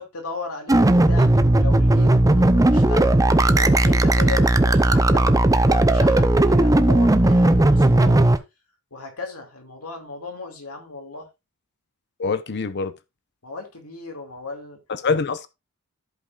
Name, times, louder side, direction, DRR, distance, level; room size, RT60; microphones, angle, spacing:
voice 1, 0.0-3.2 3.6-8.3 8.9-11.3 13.4-14.8, left 3 dB, 80° left, 2.3 m, -36 dB
sound 1, 0.7-8.4, right 1 dB, 15° right, 0.6 m, -16 dB
voice 2, 12.2-12.9 14.9-15.5, left 4 dB, 50° left, 0.8 m, -24 dB
14.5 x 5.3 x 2.4 m
head